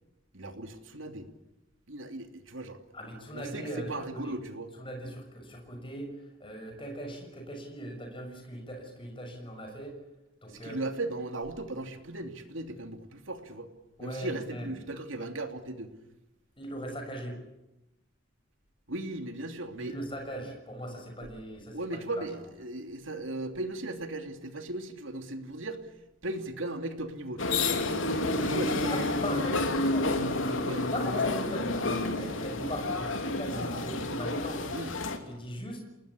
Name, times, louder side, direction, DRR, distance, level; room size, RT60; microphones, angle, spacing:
voice 1, 0.3-1.3 1.9-2.8 3.3-4.7 10.5-13.7 14.0-15.9 18.9-20.0 21.7-25.9 26.2-27.7 28.4-28.9 30.6-30.9 34.7-34.9, right 2 dB, 70° right, 7 dB, 2.9 m, -37 dB
voice 2, 2.9-4.3 4.8-10.0 10.4-10.8 14.0-14.7 16.6-17.4 19.8-22.3 28.1-30.2 30.4-34.7 35.3-35.8, equal, 25° left, 3 dB, 6.3 m, -39 dB
sound 1, 27.4-35.2, left 2 dB, 70° left, 2.9 m, -30 dB
28.5 x 20.0 x 8.6 m, 0.95 s
head